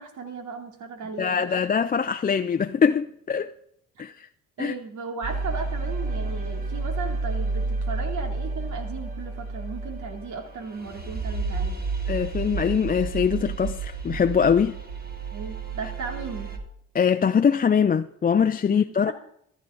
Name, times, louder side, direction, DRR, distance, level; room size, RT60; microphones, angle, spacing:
voice 1, 0.0-1.7 3.9-4.1 4.6-11.9 15.3-16.6 18.7-19.1, right 4 dB, 70° right, 3.0 m, -36 dB
voice 2, 1.2-3.5 4.0-4.1 4.6-4.7 12.1-14.8 16.9-19.1, left 7 dB, 30° left, 0.5 m, -22 dB
sound 1, 5.2-16.6, right 3 dB, 30° right, 2.6 m, -31 dB
14.5 x 13.5 x 3.9 m
cardioid pair, 90°, 30 cm